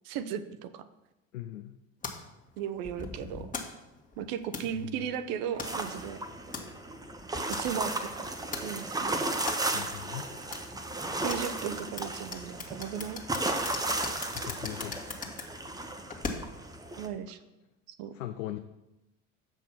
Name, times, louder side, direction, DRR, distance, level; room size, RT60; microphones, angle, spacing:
voice 1, 0.0-0.9 2.6-3.5 4.2-6.2 7.5-8.3 8.6-9.4 11.2-13.2 17.0-17.4 18.0-18.1, right 9 dB, 60° right, 11 dB, 0.7 m, -36 dB
voice 2, 1.3-1.8 4.7-5.0 9.7-10.3 14.0-15.0 16.9-17.0 18.1-18.6, left 13 dB, 80° left, 8 dB, 0.6 m, -40 dB
sound 1, 2.0-16.7, left 4 dB, 20° left, 1.6 m, -42 dB
sound 2, 5.6-17.1, right 2 dB, 10° right, 0.9 m, -35 dB
7.4 x 5.4 x 5.8 m, 0.95 s
hypercardioid pair, 70°, 39 cm